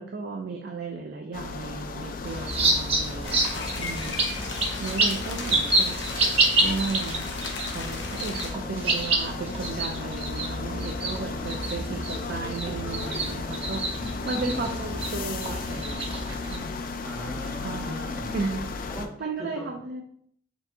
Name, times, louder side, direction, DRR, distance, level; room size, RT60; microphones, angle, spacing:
voice 1, 0.0-4.5 4.8-6.1 6.6-7.3 7.6-14.0 14.3-16.1 16.5-16.8 17.6-18.0 18.3-18.6 19.2-20.0, right 4 dB, 60° right, 2 dB, 0.4 m, -34 dB
sound 1, 1.3-19.1, left 4 dB, 50° left, 0.4 m, -35 dB
sound 2, 2.3-16.6, right 2 dB, 30° right, 0.8 m, -28 dB
sound 3, 3.2-8.5, left 4 dB, 75° left, 0.8 m, -37 dB
voice 2, 4.1-4.8 13.9-14.8 17.0-18.5 18.9-19.7, equal, 5° right, -4 dB, 0.7 m, -39 dB
4.4 x 3.9 x 2.6 m, 0.67 s
head